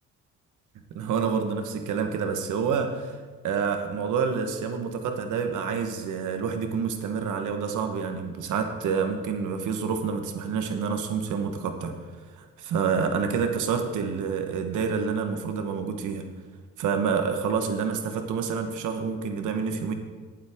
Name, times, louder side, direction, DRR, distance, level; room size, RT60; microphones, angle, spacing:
voice 1, 0.9-12.0 12.4-16.2 16.8-19.9, right 6 dB, 80° right, 6 dB, 1.2 m, -28 dB
18.0 x 7.4 x 3.6 m, 1.4 s
cardioid pair, 90°, 30 cm